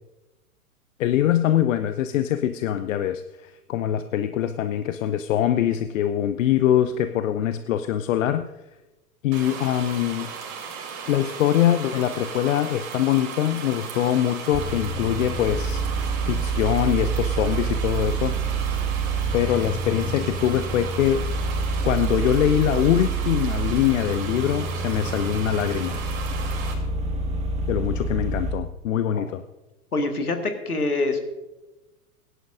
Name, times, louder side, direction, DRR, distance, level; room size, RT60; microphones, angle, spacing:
voice 1, 1.0-8.5 9.2-10.3 11.1-18.4 19.3-21.3 21.8-26.0 27.7-29.4, left 11 dB, 60° left, 11 dB, 0.7 m, -23 dB
sound 1, 9.3-26.7, right 6 dB, 50° right, 3.2 m, -36 dB
sound 2, 14.5-28.5, right 4 dB, 15° right, 1.6 m, -27 dB
voice 2, 29.9-31.2, left 2 dB, 85° left, 5 dB, 1.8 m, -25 dB
22.0 x 11.0 x 2.6 m, 1.0 s
figure-of-eight pair, 105°, 44 cm